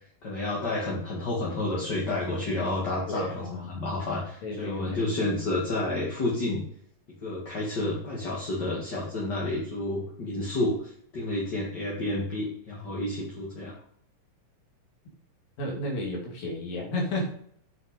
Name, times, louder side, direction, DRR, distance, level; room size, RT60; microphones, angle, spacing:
voice 1, 0.2-6.6 7.2-13.7, left 2 dB, 35° left, -4 dB, 2.2 m, -30 dB
voice 2, 3.1-3.9 4.4-5.2 15.6-17.3, left 1 dB, 80° left, -1 dB, 4.3 m, -33 dB
8.9 x 6.4 x 5.2 m, 0.65 s
omnidirectional pair, 3.9 m